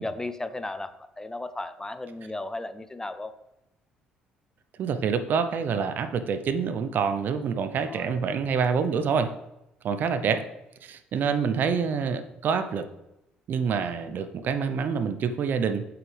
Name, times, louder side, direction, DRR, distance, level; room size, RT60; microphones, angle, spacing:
voice 1, 0.0-3.3 7.8-8.2, left 2 dB, 15° left, 12 dB, 0.7 m, -35 dB
voice 2, 4.8-9.3 9.8-10.4 10.8-12.9 13.5-15.9, right 6 dB, 60° right, 10 dB, 0.8 m, -26 dB
8.1 x 7.8 x 3.4 m, 0.89 s
hypercardioid pair, 60°, 4 cm